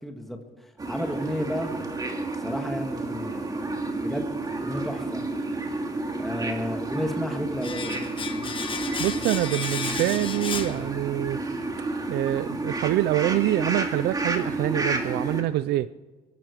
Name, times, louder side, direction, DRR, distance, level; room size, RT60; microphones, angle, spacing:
voice 1, 0.0-0.4 0.9-1.7 2.4-3.5 4.0-4.3 4.6-5.3 6.2-8.0, left 1 dB, ahead, 4 dB, 1.8 m, -32 dB
sound 1, 0.8-15.4, right 2 dB, 20° right, 2.3 m, -31 dB
Domestic sounds home sounds, 7.6-11.4 11.7-11.8, left 6 dB, 30° left, 1.3 m, -34 dB
voice 2, 9.0-11.4 11.8-15.9, right 15 dB, 75° right, 16 dB, 0.4 m, -26 dB
23.5 x 12.0 x 4.8 m, 1.3 s
cardioid pair, 110°, 17 cm